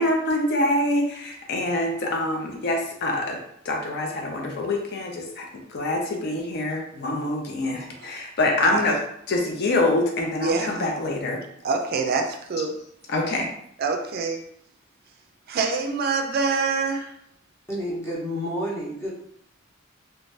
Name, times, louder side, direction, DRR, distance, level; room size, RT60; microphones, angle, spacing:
voice 1, 0.0-3.4 3.6-5.4 5.7-9.0 9.3-11.4 13.1-13.5, left 2 dB, 55° left, 1 dB, 0.5 m, -25 dB
voice 2, 10.4-10.8 11.6-12.7 13.8-14.4 15.5-17.1, right 4 dB, 50° right, 3 dB, 0.4 m, -25 dB
voice 3, 17.7-19.1, equal, 15° left, -5 dB, 0.7 m, -29 dB
2.6 x 2.2 x 3.2 m, 0.69 s
head